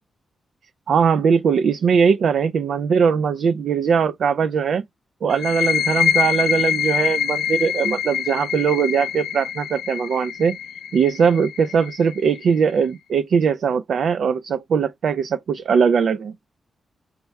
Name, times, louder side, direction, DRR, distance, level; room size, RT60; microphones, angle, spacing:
voice 1, 0.9-4.8 5.2-10.6 10.9-16.3, right 6 dB, 70° right, 0.3 m, -20 dB
sound 1, 5.3-12.7, left 9 dB, 90° left, 0.7 m, -25 dB
5.7 x 2.2 x 4.1 m
cardioid pair, 90°, 0 cm